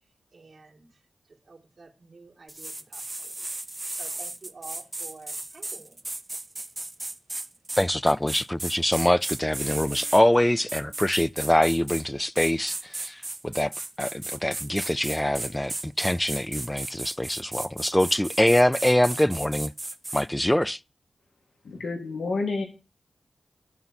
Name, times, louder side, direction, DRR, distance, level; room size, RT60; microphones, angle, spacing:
voice 1, 0.3-0.9 1.5-3.3 4.0-6.0, right 3 dB, 60° right, 2.0 m, -48 dB
sound 1, 2.5-10.2 10.7-12.1 12.4-20.2, right 2 dB, 30° right, 0.6 m, -35 dB
voice 2, 7.8-13.1 13.4-13.7 14.0-19.7 20.1-20.8, left 1 dB, 10° left, 0.3 m, -24 dB
Bass guitar, 9.7-12.1, right 10 dB, 45° left, 4.4 m, -55 dB
voice 3, 21.6-22.6, left 3 dB, 80° left, 1.7 m, -29 dB
11.0 x 3.8 x 5.8 m
cardioid pair, 45°, 0 cm